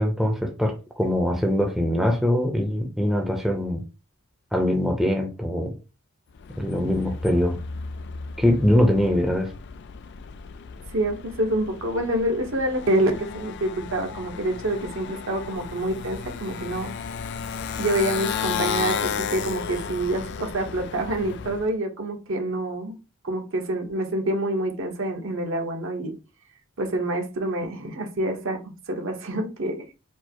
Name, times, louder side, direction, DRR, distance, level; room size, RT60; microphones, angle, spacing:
voice 1, 0.0-3.8 4.5-5.7 6.6-7.6 8.4-9.5, left 1 dB, ahead, 0.7 m, -22 dB
Motorcycle, 6.3-21.7, left 6 dB, 50° left, 0.3 m, -34 dB
voice 2, 10.9-16.9 17.8-23.0 23.2-26.1 26.8-28.6 28.9-29.9, right 1 dB, 60° right, 1.0 m, -27 dB
4.5 x 2.0 x 4.4 m
head